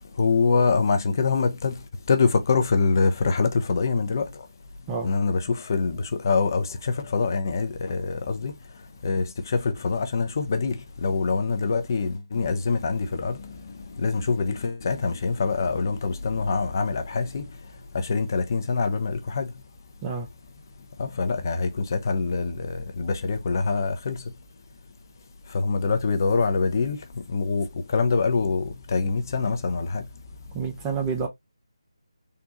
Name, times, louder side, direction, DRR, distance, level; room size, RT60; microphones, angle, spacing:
voice 1, 0.2-1.7 2.1-4.3 5.0-8.5 9.0-13.4 14.0-17.4 17.9-19.5 21.0-24.2 25.5-27.0 27.3-27.7 27.9-30.0, left 4 dB, 35° left, 0.6 m, -24 dB
voice 2, 30.5-31.3, right 5 dB, 15° right, 0.6 m, -28 dB
3.7 x 2.3 x 2.8 m
figure-of-eight pair, 155°, 3 cm